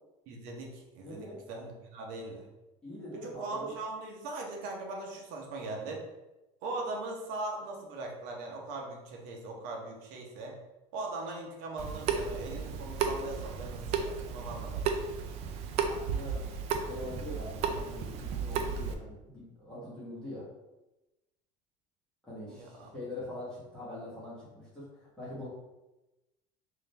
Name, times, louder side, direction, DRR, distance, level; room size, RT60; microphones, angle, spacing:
voice 1, 0.3-2.5 3.2-6.0 6.6-10.6 10.9-14.8 22.5-22.9, right 2 dB, 55° right, 0 dB, 0.9 m, -40 dB
voice 2, 1.0-1.4 2.8-3.7 15.8-16.4 16.9-20.4 22.2-25.5, left 1 dB, 5° left, -9 dB, 1.3 m, -43 dB
Water tap faucet / Sink (filling or washing) / Drip, 11.8-18.9, right 6 dB, 40° right, 0.4 m, -34 dB
3.6 x 2.7 x 3.3 m, 1.0 s
cardioid pair, 175°, 17 cm